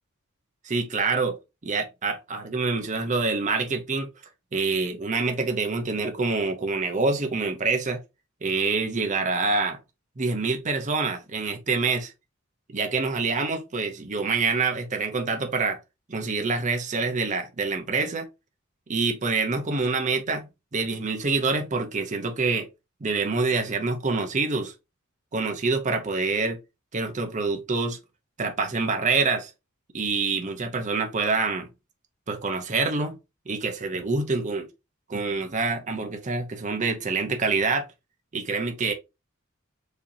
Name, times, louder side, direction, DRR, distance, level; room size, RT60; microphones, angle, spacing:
voice 1, 0.6-4.1 4.5-8.0 8.4-9.8 10.2-12.1 12.7-15.8 16.1-18.3 18.9-22.7 23.0-24.7 25.3-26.6 26.9-28.0 28.4-29.5 29.9-31.7 32.3-33.2 33.5-34.7 35.1-37.9 38.3-38.9, right 4 dB, 35° right, 0.6 m, -26 dB
5.0 x 2.8 x 2.6 m
head